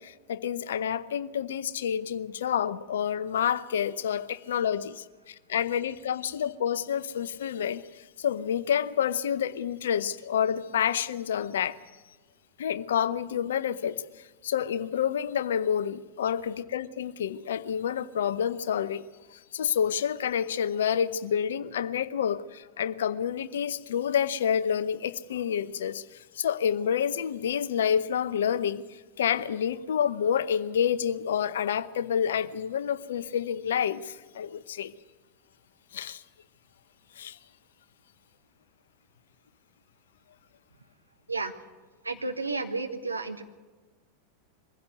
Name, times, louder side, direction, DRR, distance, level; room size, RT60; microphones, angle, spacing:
voice 1, 0.0-7.8 8.2-11.8 12.6-14.0 14.4-19.0 19.5-26.0 26.4-28.8 29.2-34.9 35.9-36.2 37.2-37.4, left 8 dB, 60° left, 0.8 m, -28 dB
voice 2, 42.0-43.4, right 3 dB, 80° right, 1.5 m, -32 dB
23.0 x 15.5 x 8.1 m
figure-of-eight pair, 90°, 0 cm